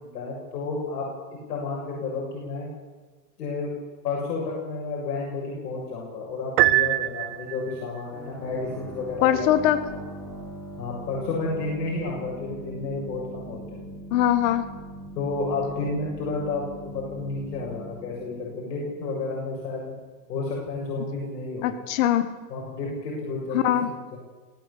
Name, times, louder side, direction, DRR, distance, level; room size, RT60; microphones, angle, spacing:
voice 1, 0.0-2.7 3.4-3.7 4.0-9.5 10.8-13.9 15.2-19.9 20.3-21.7 22.5-24.2, left 3 dB, 85° left, -3 dB, 7.3 m, -31 dB
Piano, 6.6-7.8, right 17 dB, 75° right, 1.0 m, -23 dB
sound 1, 8.1-19.6, right 1 dB, 5° left, 3.6 m, -41 dB
voice 2, 9.2-9.8 14.1-14.7 21.6-22.3 23.5-23.9, left 11 dB, 55° left, 10 dB, 1.7 m, -21 dB
18.5 x 17.0 x 8.4 m, 1.3 s
supercardioid pair, 145°, 47 cm